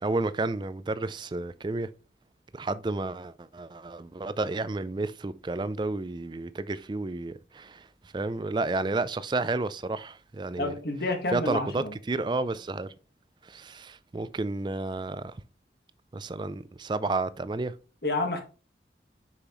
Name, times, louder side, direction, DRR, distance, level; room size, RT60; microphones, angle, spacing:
voice 1, 0.0-1.9 2.5-7.9 8.1-10.7 11.3-12.9 13.4-15.3 16.1-17.7, right 3 dB, 25° right, 0.3 m, -31 dB
voice 2, 10.6-11.9 18.0-18.4, left 2 dB, 65° left, 1.6 m, -29 dB
6.8 x 5.6 x 3.1 m
head